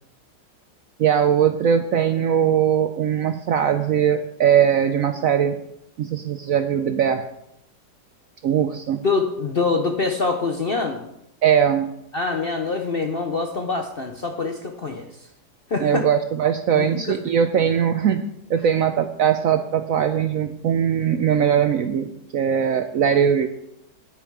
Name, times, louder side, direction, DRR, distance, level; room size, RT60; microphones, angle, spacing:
voice 1, 1.0-5.6 6.0-7.3 8.4-9.0 11.4-11.9 15.8-18.2 18.5-23.5, right 8 dB, 65° right, 8 dB, 0.8 m, -20 dB
voice 2, 9.0-11.1 12.1-15.1 15.7-16.0 16.7-17.2, left 4 dB, 50° left, 4 dB, 0.7 m, -25 dB
9.5 x 9.2 x 4.7 m, 0.80 s
omnidirectional pair, 1.9 m